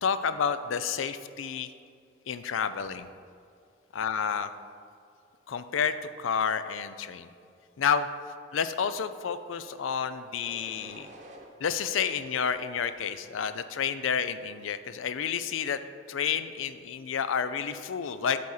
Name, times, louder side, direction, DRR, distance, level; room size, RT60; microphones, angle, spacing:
voice 1, 0.0-1.7 2.3-3.1 3.9-4.5 5.5-7.3 7.8-8.1 8.5-11.1 11.6-15.8 16.1-18.4, left 7 dB, 85° left, 12 dB, 0.4 m, -30 dB
sound 1, 9.5-9.9 10.4-11.5 12.0-13.1 13.6-14.1, right 1 dB, 35° right, 0.9 m, -51 dB
8.4 x 4.2 x 6.4 m, 2.4 s
head